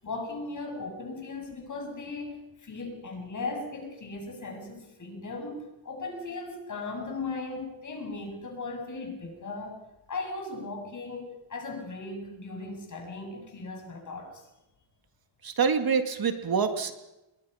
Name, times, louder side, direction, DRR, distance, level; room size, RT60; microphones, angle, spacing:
voice 1, 0.0-9.8 10.1-14.5, left 3 dB, 40° left, 2 dB, 7.5 m, -37 dB
voice 2, 15.4-16.9, right 6 dB, 50° right, 7 dB, 2.0 m, -26 dB
29.5 x 21.5 x 5.7 m, 0.95 s
wide cardioid pair, 160°, 48 cm